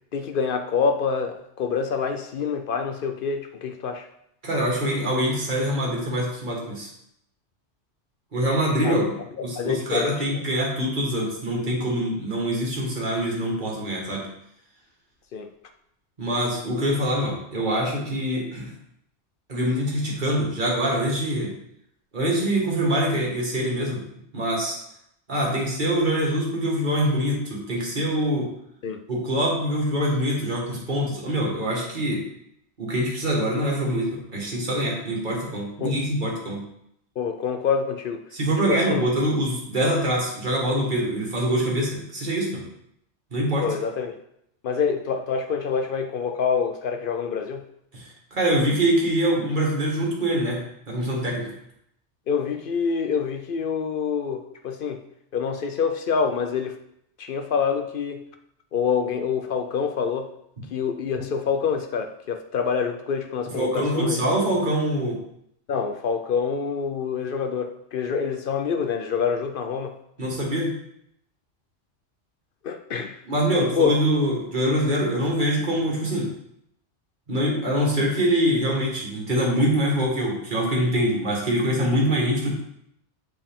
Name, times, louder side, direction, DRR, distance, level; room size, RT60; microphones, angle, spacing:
voice 1, 0.1-4.1 8.8-8.9 9.4-10.1 15.3-15.5 28.8-29.0 35.8-36.0 37.2-38.2 38.7-39.1 43.6-44.2 44.6-47.7 52.3-55.0 55.3-56.8 57.2-58.2 58.7-60.3 60.7-64.2 65.7-70.0 72.6-73.2 73.6-74.0, left 6 dB, 60° left, 6 dB, 0.6 m, -26 dB
voice 2, 4.4-6.9 8.3-9.2 9.4-14.3 16.2-18.7 19.5-21.5 22.1-24.0 24.3-24.8 25.3-28.5 29.1-32.2 32.8-36.6 38.3-42.6 43.3-43.7 47.9-51.5 60.6-60.7 63.5-65.2 70.2-70.7 73.3-76.3 77.3-82.5, equal, 40° right, -3 dB, 1.8 m, -24 dB
7.3 x 4.7 x 3.6 m, 0.75 s
omnidirectional pair, 1.3 m